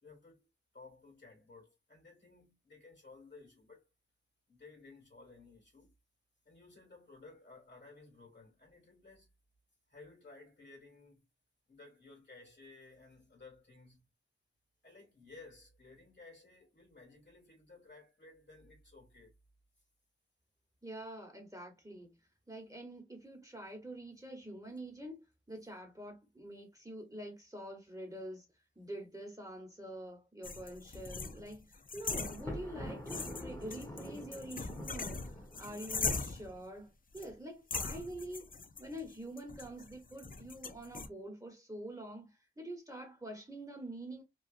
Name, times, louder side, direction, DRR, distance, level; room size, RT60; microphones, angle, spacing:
voice 1, 0.0-3.9 4.5-5.9 6.4-9.3 9.9-11.3 11.7-14.0 14.8-19.3, left 3 dB, 60° left, 1.8 m, -57 dB
voice 2, 20.8-22.1 22.5-28.5 28.7-38.5 38.8-44.2, right 1 dB, 15° right, 1.1 m, -46 dB
sound 1, 30.4-32.8 33.1-36.6 37.1-37.3 37.7-41.1, left 4 dB, 45° left, 0.4 m, -40 dB
Thunder, 32.3-36.4, equal, 15° left, 1.1 m, -46 dB
3.1 x 2.3 x 2.4 m
wide cardioid pair, 45°, 21 cm